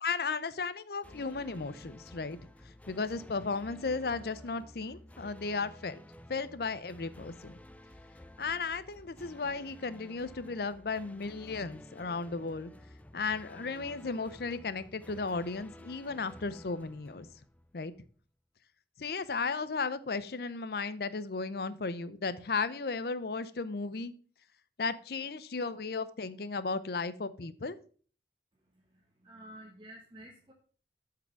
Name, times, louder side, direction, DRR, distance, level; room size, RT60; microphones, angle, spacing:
voice 1, 0.0-2.4 2.6-6.0 6.3-7.6 8.4-12.7 13.1-17.3 17.7-17.9 19.0-24.1 24.8-27.8, left 4 dB, 60° left, 0.6 m, -35 dB
sound 1, 1.0-18.1, left 1 dB, 10° left, 0.4 m, -53 dB
voice 2, 28.7-30.5, right 1 dB, 30° right, 1.1 m, -52 dB
8.1 x 4.9 x 5.7 m
head